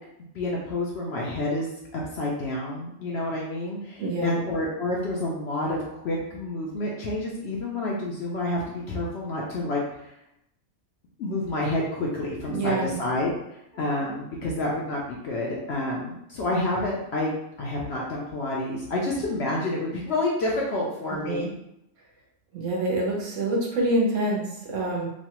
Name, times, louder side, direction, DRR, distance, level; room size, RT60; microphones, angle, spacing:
voice 1, 0.3-1.7 1.9-10.1 11.2-13.3 13.7-17.3 17.6-21.5, left 2 dB, 65° left, -3 dB, 0.7 m, -29 dB
voice 2, 4.0-4.4 12.5-13.0 21.1-21.4 22.5-25.1, right 2 dB, 65° right, -3 dB, 1.1 m, -26 dB
3.1 x 2.2 x 2.9 m, 0.83 s
omnidirectional pair, 1.4 m